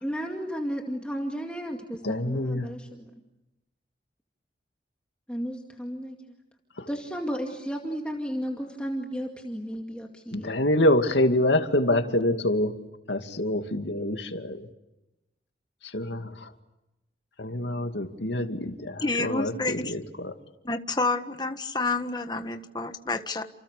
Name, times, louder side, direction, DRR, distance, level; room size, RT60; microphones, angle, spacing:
voice 1, 0.0-3.1 5.3-6.2 6.9-10.6, equal, 5° left, 2.2 m, -33 dB
voice 2, 2.0-2.7 6.8-6.9 10.3-12.7 13.1-14.7 15.9-16.5 17.4-20.3, left 1 dB, 80° left, 2.5 m, -26 dB
voice 3, 19.0-19.9 20.6-23.4, left 3 dB, 25° left, 1.5 m, -29 dB
30.0 x 28.0 x 6.8 m
head